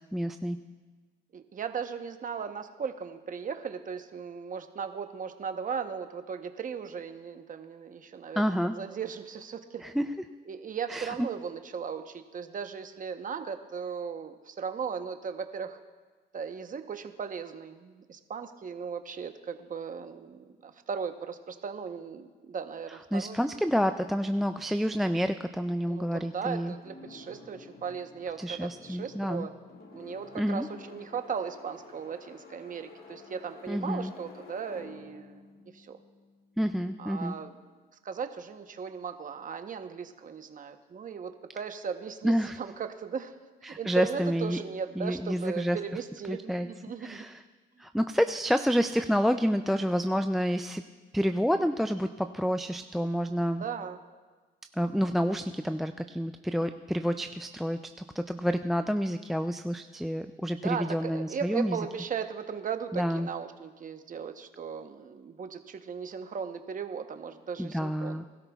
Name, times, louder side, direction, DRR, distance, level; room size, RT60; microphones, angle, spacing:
voice 1, 0.1-0.6 8.4-8.7 9.8-10.1 10.9-11.1 22.9-26.7 28.4-29.5 30.4-30.7 33.7-34.1 36.6-37.4 42.2-42.6 43.6-44.6 45.0-45.8 46.3-46.7 47.0-47.4 47.8-50.8 51.1-53.6 54.7-57.8 58.2-61.8 62.9-63.3 67.6-68.2, equal, ahead, 9 dB, 0.3 m, -29 dB
voice 2, 1.3-8.4 8.7-9.8 10.5-15.8 16.3-23.4 25.8-29.5 29.9-35.4 35.7-36.0 37.0-37.5 38.0-43.3 43.6-47.3 53.6-54.0 60.6-68.3, right 6 dB, 40° right, 7 dB, 0.9 m, -37 dB
sound 1, 26.8-36.8, left 4 dB, 50° left, 1.6 m, -51 dB
20.5 x 13.0 x 2.3 m, 1.3 s
cardioid pair, 90°, 20 cm